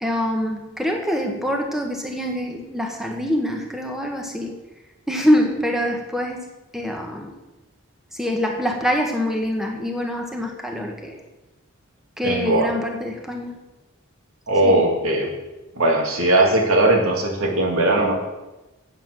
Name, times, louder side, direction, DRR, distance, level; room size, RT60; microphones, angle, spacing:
voice 1, 0.0-4.5 5.1-6.5 6.7-7.3 8.1-11.1 12.2-13.6 14.6-14.8, equal, ahead, 2 dB, 1.0 m, -24 dB
voice 2, 12.2-12.7 14.5-15.3 15.8-18.1, right 2 dB, 75° right, 1 dB, 2.0 m, -19 dB
8.8 x 7.3 x 6.0 m, 1.1 s
head